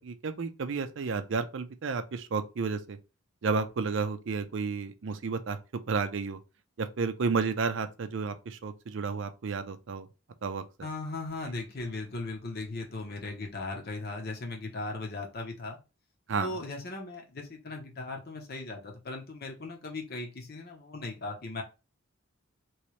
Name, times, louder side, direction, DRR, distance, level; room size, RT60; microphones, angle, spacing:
voice 1, 0.0-3.0 3.4-5.6 5.9-6.4 6.8-10.1 10.4-10.6 16.3-16.6, right 4 dB, 60° right, 0.5 m, -31 dB
voice 2, 10.8-15.8 16.4-21.6, left 2 dB, 45° left, 0.8 m, -38 dB
3.1 x 2.9 x 3.1 m
head